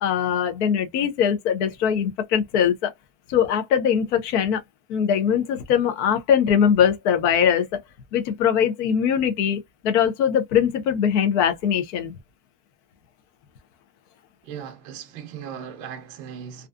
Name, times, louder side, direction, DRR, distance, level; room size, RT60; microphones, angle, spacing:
voice 1, 0.0-2.9 3.3-4.6 4.9-7.8 8.1-12.1, left 8 dB, 50° left, 0.6 m, -21 dB
voice 2, 14.4-16.7, right 8 dB, 35° right, 0.5 m, -37 dB
2.5 x 2.3 x 2.4 m
supercardioid pair, 175°, 46 cm